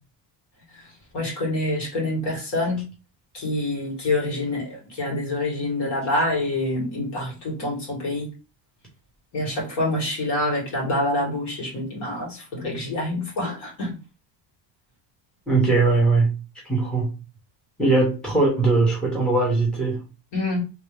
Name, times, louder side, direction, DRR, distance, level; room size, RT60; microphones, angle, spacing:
voice 1, 1.1-2.9 3.3-8.3 9.3-14.0 20.3-20.6, left 1 dB, 60° left, 2.1 m, -26 dB
voice 2, 15.5-16.3 16.7-17.1 17.8-20.0, right 3 dB, ahead, 0.9 m, -20 dB
3.2 x 2.8 x 3.3 m
cardioid pair, 175°, 47 cm